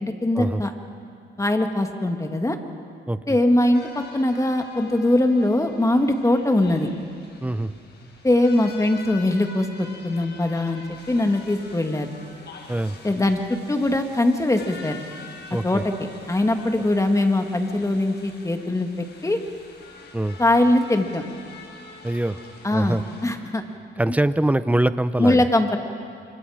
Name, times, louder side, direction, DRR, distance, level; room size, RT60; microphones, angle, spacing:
voice 1, 0.0-0.7 1.4-2.6 3.3-6.9 8.2-12.1 13.0-13.4 13.7-15.0 15.6-15.9 16.3-19.4 20.4-21.2 22.6-23.0 23.2-23.6 25.2-25.8, left 1 dB, 15° left, 5 dB, 2.0 m, -21 dB
voice 2, 3.1-3.4 7.4-7.7 12.7-13.0 15.5-15.8 20.1-20.4 22.0-22.4 22.7-23.0 24.0-25.4, right 1 dB, 5° right, 13 dB, 0.8 m, -23 dB
sound 1, 3.7-23.3, left 4 dB, 60° left, 4.7 m, -45 dB
28.5 x 25.5 x 5.1 m, 2.3 s
cardioid pair, 90°, 20 cm